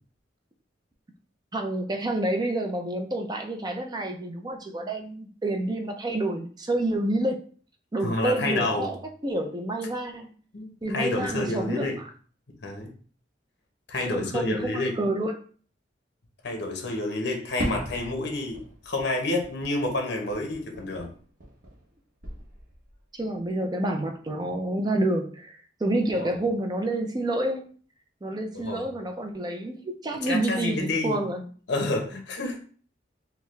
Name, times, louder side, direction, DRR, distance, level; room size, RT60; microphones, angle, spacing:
voice 1, 1.5-7.4 7.9-10.3 10.8-11.9 14.1-15.3 23.1-27.7 28.2-31.4, right 1 dB, 20° right, 4 dB, 0.5 m, -28 dB
voice 2, 8.0-8.9 10.5-12.0 12.6-12.9 13.9-14.9 16.4-21.1 26.1-26.3 28.5-28.9 30.2-31.2 31.7-32.6, left 2 dB, 60° left, 2 dB, 1.0 m, -29 dB
Fireworks, 17.6-21.9 22.2-23.0, right 1 dB, 55° right, 1.0 m, -38 dB
4.5 x 2.2 x 3.2 m, 0.43 s
head